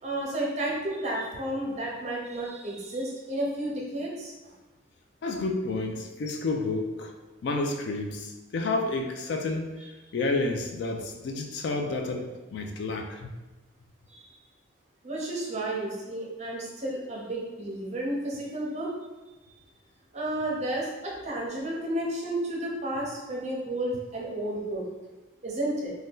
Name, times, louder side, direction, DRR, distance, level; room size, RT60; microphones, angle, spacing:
voice 1, 0.0-4.3 14.1-14.3 15.0-18.9 20.1-24.8 25.4-25.9, right 1 dB, 35° right, -3 dB, 0.6 m, -32 dB
voice 2, 5.2-7.1 7.4-9.7 10.1-13.3, left 3 dB, 55° left, 4 dB, 0.3 m, -30 dB
2.6 x 2.2 x 3.5 m, 1.1 s
head